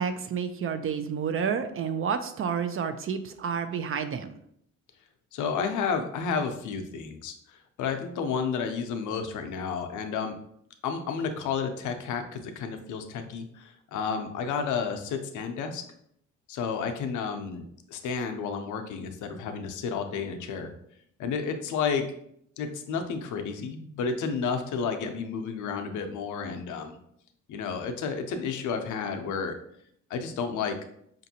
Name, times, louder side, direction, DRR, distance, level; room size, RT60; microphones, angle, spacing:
voice 1, 0.0-4.4, right 7 dB, 45° right, 9 dB, 0.4 m, -30 dB
voice 2, 5.3-10.4 10.8-15.8 16.5-20.7 21.2-22.0 22.6-27.0 27.5-29.5 30.1-30.8, left 5 dB, 80° left, 6 dB, 0.6 m, -31 dB
5.0 x 2.6 x 2.7 m, 0.70 s
cardioid pair, 90°, 30 cm